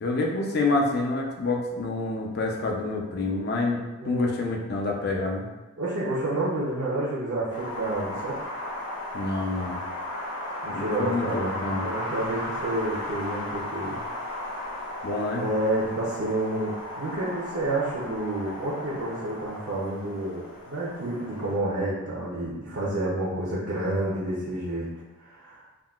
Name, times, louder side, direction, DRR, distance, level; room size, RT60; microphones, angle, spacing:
voice 1, 0.0-5.5 9.1-9.8 10.7-11.9 15.0-15.4, left 2 dB, 45° left, 0 dB, 0.4 m, -27 dB
voice 2, 4.0-4.3 5.8-8.4 10.6-14.0 15.3-24.9 25.2-25.6, right 1 dB, 60° right, -7 dB, 0.6 m, -29 dB
Wind, 7.5-21.6, left 1 dB, 70° left, 1.0 m, -35 dB
3.6 x 2.2 x 2.3 m, 1.1 s
head